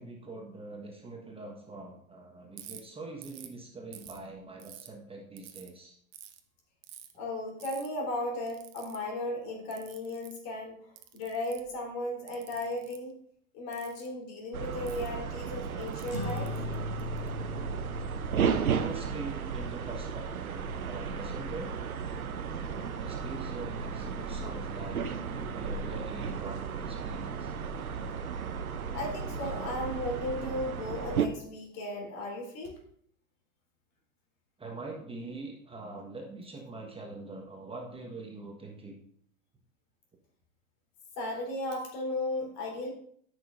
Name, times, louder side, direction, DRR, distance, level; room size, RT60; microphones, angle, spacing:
voice 1, 0.0-6.0 18.6-21.7 22.7-27.5 34.6-39.0, right 3 dB, 15° right, 0 dB, 1.3 m, -43 dB
Ratchet pawl, 2.6-2.8 3.2-3.5 3.9-4.9 5.4-5.7 6.1-6.4 6.8-7.1 7.6-7.9 8.5-9.0 9.7-10.4 11.0-11.7 12.3-13.0 13.7-14.1 14.9-15.1 15.8-17.3, right 12 dB, 40° right, 1.0 m, -49 dB
voice 2, 7.2-10.7 11.1-13.1 13.5-16.5 28.9-32.8 41.2-42.9, left 1 dB, 50° left, 0 dB, 3.7 m, -35 dB
sound 1, 14.5-31.3, right 6 dB, 85° right, 0.7 m, -34 dB
sound 2, 16.1-21.0, left 4 dB, 85° left, 2.5 m, -40 dB
13.5 x 6.4 x 2.6 m, 0.65 s
hypercardioid pair, 90°, 41 cm